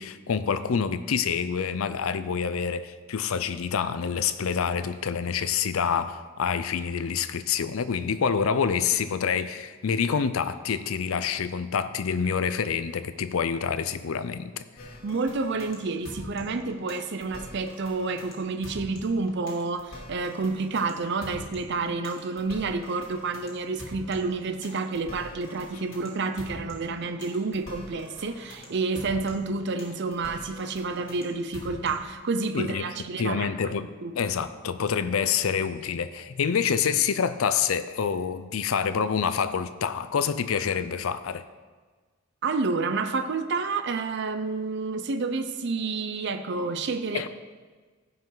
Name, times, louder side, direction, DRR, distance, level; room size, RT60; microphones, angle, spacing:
voice 1, 0.0-14.9 32.5-41.4 47.1-47.3, left 6 dB, 90° left, 12 dB, 0.5 m, -27 dB
sound 1, 14.8-32.2, left 1 dB, 70° left, 2.7 m, -43 dB
voice 2, 15.0-33.7 34.0-34.2 42.4-47.3, right 3 dB, 55° right, 8 dB, 0.5 m, -29 dB
15.5 x 5.5 x 3.9 m, 1.4 s
head